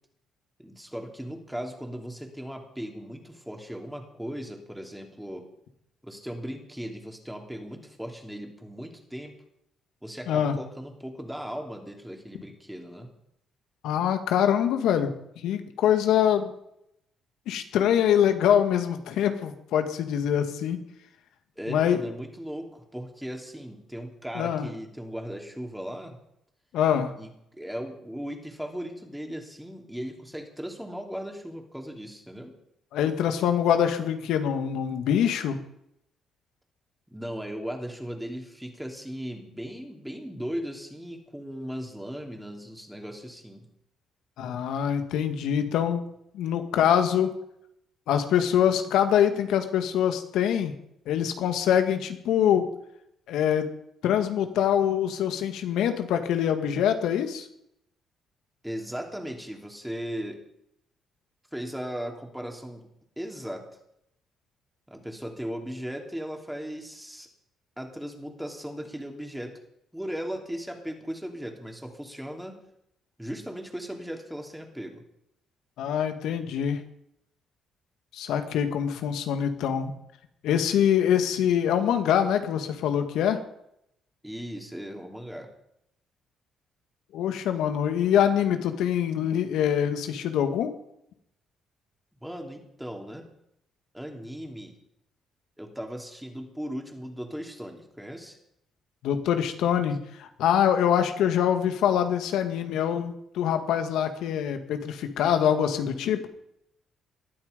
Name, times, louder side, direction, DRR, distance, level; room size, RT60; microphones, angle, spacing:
voice 1, 0.6-5.5 6.0-9.3 10.0-13.1 21.6-26.2 27.2-27.3 27.6-32.6 37.1-43.7 58.6-60.4 61.5-62.9 63.2-63.7 64.9-67.3 67.8-69.6 69.9-72.6 73.2-75.0 84.2-85.5 92.2-93.3 93.9-94.8 95.6-98.4, equal, 5° right, 3 dB, 3.1 m, -37 dB
voice 2, 13.8-15.1 15.4-16.5 17.5-20.8 21.7-22.0 24.4-24.7 26.7-27.1 32.9-35.6 44.4-46.0 46.3-47.3 48.1-50.8 51.1-52.7 53.3-53.7 54.0-57.5 75.8-76.8 78.1-79.9 80.4-83.4 87.1-90.7 99.0-106.3, left 9 dB, 85° left, 7 dB, 2.2 m, -24 dB
20.0 x 13.0 x 5.3 m, 0.76 s
cardioid pair, 125°, 0 cm